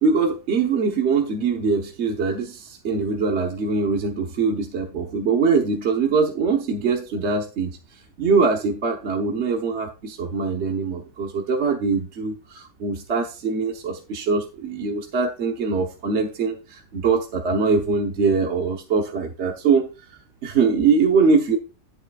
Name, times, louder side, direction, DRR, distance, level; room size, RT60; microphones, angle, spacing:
voice 1, 0.0-19.9 20.4-21.6, right 4 dB, 45° right, 3 dB, 1.1 m, -22 dB
11.0 x 7.6 x 2.4 m, 0.31 s
omnidirectional pair, 1.9 m